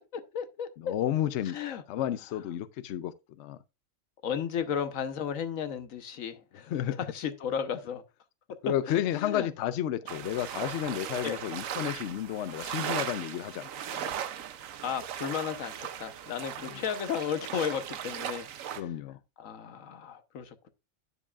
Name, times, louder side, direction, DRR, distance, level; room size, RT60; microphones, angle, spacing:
voice 1, 0.1-0.9 1.4-1.8 4.2-6.7 7.1-8.0 8.9-9.5 11.2-11.4 14.8-18.9 19.4-20.7, left 8 dB, 85° left, 1.3 m, -34 dB
voice 2, 0.8-1.6 1.9-3.6 6.7-7.0 8.6-14.2 16.7-16.8 18.8-19.2, left 11 dB, 65° left, 0.8 m, -32 dB
sound 1, 10.1-18.8, right 9 dB, 85° right, 1.1 m, -38 dB
9.8 x 7.3 x 2.3 m
omnidirectional pair, 1.4 m